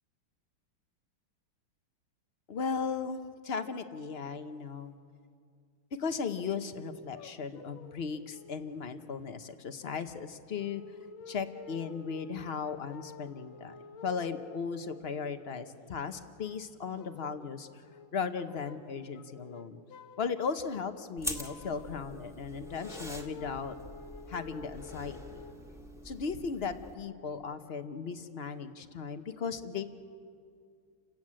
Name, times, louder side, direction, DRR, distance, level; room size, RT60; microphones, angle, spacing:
voice 1, 2.5-4.9 6.0-10.8 11.3-17.7 18.1-19.8 20.2-23.7 24.3-25.2 26.0-29.8, left 5 dB, 45° left, 9 dB, 0.8 m, -36 dB
sound 1, 7.1-8.0 8.3-8.7 9.5-9.6 10.6-15.8 16.2-17.5 17.8-18.1 18.4-18.9 19.2-20.3 20.6-25.5, left 6 dB, 80° left, 1.6 m, -51 dB
sound 2, 21.2-26.9, left 1 dB, ahead, 1.6 m, -44 dB
29.5 x 17.5 x 7.6 m, 2.3 s
omnidirectional pair, 2.2 m